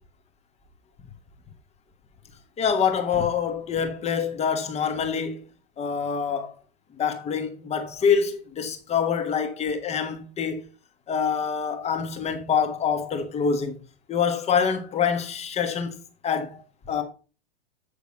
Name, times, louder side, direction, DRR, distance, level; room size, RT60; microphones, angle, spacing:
voice 1, 2.6-5.4 5.8-6.5 7.0-10.7 11.1-13.7 14.1-15.9 16.2-16.6 16.9-17.0, left 6 dB, 20° left, 1.5 m, -25 dB
8.3 x 6.7 x 3.9 m
figure-of-eight pair, 95°, 32 cm